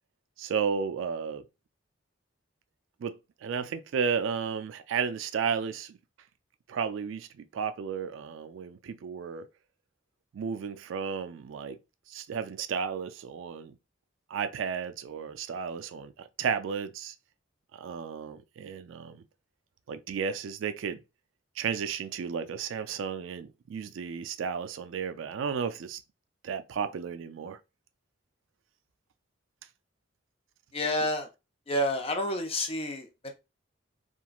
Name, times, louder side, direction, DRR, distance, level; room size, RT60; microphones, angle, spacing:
voice 1, 0.4-1.5 3.0-3.1 3.4-6.0 6.7-9.5 10.3-11.8 12.1-13.7 14.3-17.1 17.7-19.2 19.9-21.0 21.6-26.0 26.4-27.6, right 6 dB, 75° right, 0.3 m, -33 dB
voice 2, 30.7-31.3 31.7-33.3, left 1 dB, 30° left, 0.5 m, -29 dB
2.9 x 2.4 x 2.3 m
head